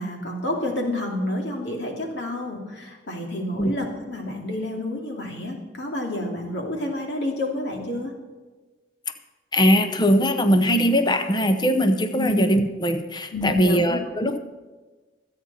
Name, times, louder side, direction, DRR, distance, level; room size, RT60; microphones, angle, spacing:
voice 1, 0.0-8.1 12.2-12.3 13.3-14.0, left 1 dB, 65° left, 1 dB, 2.6 m, -29 dB
voice 2, 9.5-14.4, equal, 25° left, 9 dB, 0.7 m, -21 dB
26.0 x 8.7 x 4.2 m, 1.3 s
head